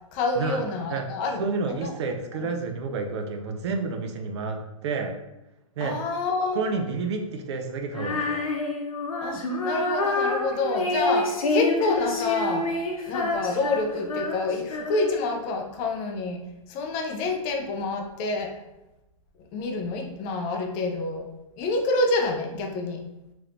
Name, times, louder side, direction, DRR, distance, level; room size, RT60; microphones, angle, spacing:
voice 1, 0.1-1.4 1.7-1.9 5.8-6.6 9.2-12.7 13.1-16.4 16.7-18.5 19.4-21.3 21.6-23.0, left 3 dB, 25° left, 3 dB, 0.5 m, -27 dB
voice 2, 1.4-5.1 5.8-6.0 6.5-8.4, right 4 dB, 55° right, 4 dB, 0.5 m, -30 dB
Female singing, 7.9-15.3, left 2 dB, 80° left, 0.7 m, -27 dB
3.2 x 3.0 x 2.5 m, 0.96 s
hypercardioid pair, 140°, 18 cm